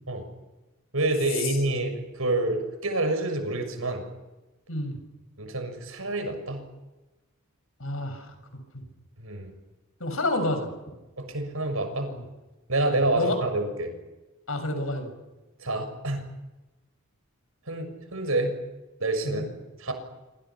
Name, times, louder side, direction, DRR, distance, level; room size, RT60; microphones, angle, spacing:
voice 1, 0.9-4.1 5.4-6.6 9.2-9.5 11.2-12.1 12.7-13.9 15.6-16.2 17.7-18.6 19.0-19.4 19.8-19.9, right 2 dB, 75° right, 7 dB, 6.6 m, -27 dB
voice 2, 7.8-8.3 8.7-8.8 10.0-10.7 12.1-12.2 12.9-13.4 14.5-15.1 19.2-19.4, left 1 dB, 70° left, 7 dB, 7.0 m, -29 dB
27.5 x 26.0 x 6.0 m, 1.1 s
head